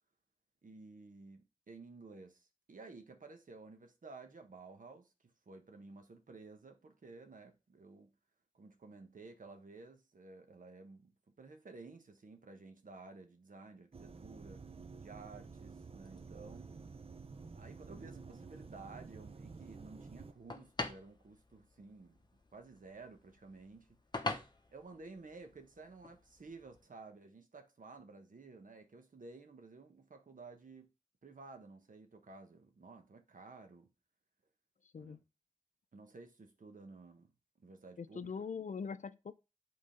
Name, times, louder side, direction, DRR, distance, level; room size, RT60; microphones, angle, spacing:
voice 1, 0.6-5.1 5.5-8.1 8.5-14.7 15.0-16.7 17.5-22.2 22.5-23.9 24.7-30.9 31.2-33.9 35.0-35.2 35.9-37.3 37.6-38.3, right 3 dB, 75° right, 1.2 m, -54 dB
sound 1, 13.9-20.3, right 4 dB, 45° right, 0.5 m, -51 dB
sound 2, 16.0-26.9, left 2 dB, 35° left, 0.9 m, -48 dB
voice 2, 34.8-35.2 38.0-39.3, left 5 dB, 65° left, 0.5 m, -42 dB
7.7 x 3.9 x 5.1 m
wide cardioid pair, 80°, 14 cm